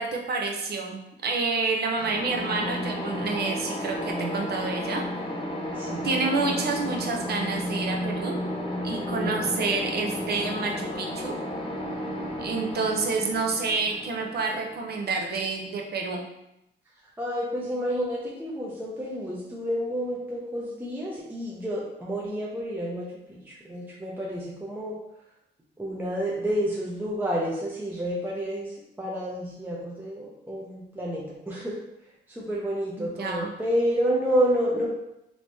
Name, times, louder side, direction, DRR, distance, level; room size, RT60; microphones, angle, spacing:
voice 1, 0.0-5.0 6.0-8.4 8.8-11.3 12.4-16.2 33.0-33.5, right 4 dB, 55° right, 1 dB, 0.7 m, -28 dB
sound 1, 2.0-15.6, left 1 dB, 25° left, 0.7 m, -33 dB
voice 2, 4.1-4.6 5.7-6.1 9.1-9.4 17.2-25.0 25.8-31.8 32.3-34.9, equal, 10° right, -5 dB, 0.7 m, -29 dB
3.2 x 3.1 x 2.7 m, 0.85 s
cardioid pair, 90°, 20 cm